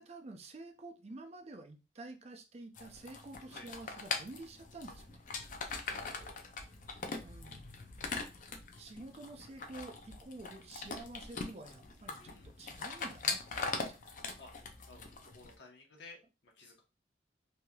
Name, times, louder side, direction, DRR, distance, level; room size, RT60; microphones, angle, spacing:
voice 1, 0.0-5.2 7.2-7.6 8.8-14.3, right 2 dB, 35° right, 5 dB, 0.5 m, -49 dB
sound 1, 2.7-15.5, left 4 dB, 45° left, 0.5 m, -42 dB
voice 2, 5.8-6.4 12.2-12.5 14.4-14.5 14.9-16.8, left 2 dB, 75° left, 0 dB, 1.1 m, -55 dB
3.2 x 2.7 x 2.3 m, 0.28 s
head